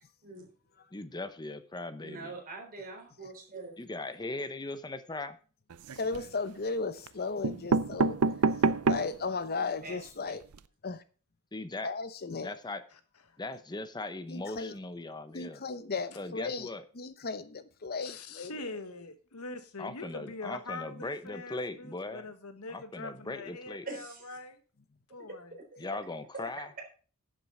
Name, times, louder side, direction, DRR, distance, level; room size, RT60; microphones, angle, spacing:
voice 1, 0.9-2.3 3.8-5.4 11.5-11.9 12.4-12.8 13.4-15.6 16.2-16.8 19.8-22.3 22.7-23.9 25.8-26.7, left 2 dB, 20° left, 0.8 m, -39 dB
voice 2, 2.0-3.8 9.8-10.1 23.9-24.3 25.5-25.9, right 3 dB, 40° right, 3.9 m, -44 dB
sound 1, 5.7-6.3 7.1-7.2 7.4-9.2 9.7-9.8 10.0-10.1 10.4-10.6, right 4 dB, 90° right, 0.6 m, -28 dB
voice 3, 5.9-8.2 8.8-10.4 10.8-11.0 11.8-12.5 14.3-14.7 15.3-16.7 17.0-18.7, left 4 dB, 45° left, 0.9 m, -35 dB
voice 4, 18.0-24.6 25.1-25.5, left 3 dB, 90° left, 1.5 m, -43 dB
10.5 x 7.6 x 5.4 m
head